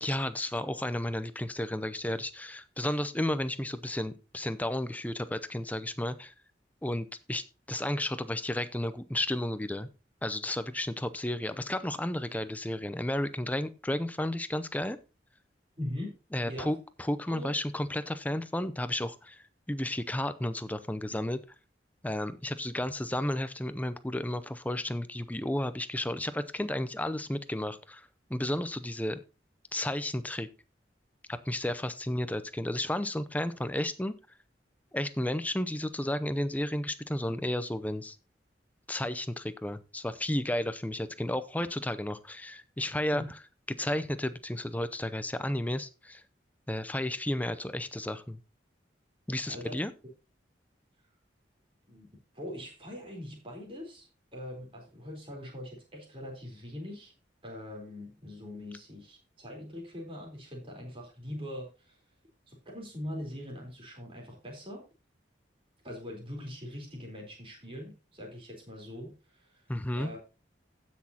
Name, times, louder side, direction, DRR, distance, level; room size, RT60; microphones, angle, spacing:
voice 1, 0.0-6.3 6.8-9.9 10.2-15.0 16.3-21.4 22.0-29.2 29.7-30.5 31.3-34.2 34.9-38.2 38.9-43.2 43.7-46.2 46.7-48.4 49.3-49.9 69.7-70.1, left 1 dB, 10° left, 13 dB, 0.5 m, -32 dB
voice 2, 15.8-16.1 16.5-16.7 17.3-17.5 43.1-43.3 49.5-49.8 51.9-52.1 52.3-57.1 57.4-62.0 62.5-64.8 65.8-69.6 70.0-70.2, left 1 dB, 30° right, 0 dB, 3.9 m, -42 dB
15.5 x 6.2 x 2.9 m, 0.31 s
head